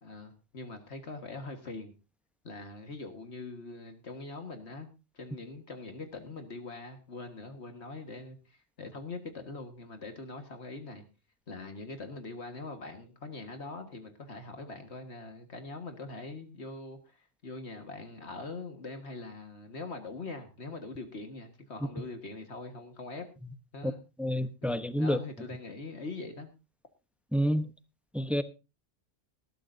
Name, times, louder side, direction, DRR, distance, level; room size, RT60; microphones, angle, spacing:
voice 1, 0.0-1.9 2.4-4.9 5.1-11.0 11.5-23.3 23.7-24.0 24.6-26.5, left 3 dB, 55° left, 1.9 m, -43 dB
voice 2, 24.2-25.2 27.3-27.7 28.1-28.4, equal, ahead, 0.6 m, -28 dB
19.0 x 13.0 x 2.7 m
omnidirectional pair, 1.3 m